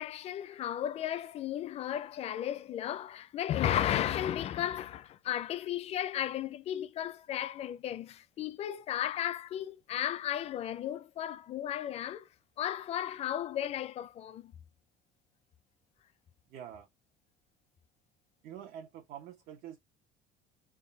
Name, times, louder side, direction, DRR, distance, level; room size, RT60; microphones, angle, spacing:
voice 1, 0.0-12.3 12.6-14.5, left 11 dB, 40° left, 0.5 m, -34 dB
voice 2, 16.5-16.9 18.4-19.8, right 9 dB, 70° right, 1.0 m, -46 dB
3.7 x 2.3 x 4.0 m
cardioid pair, 140°, 16 cm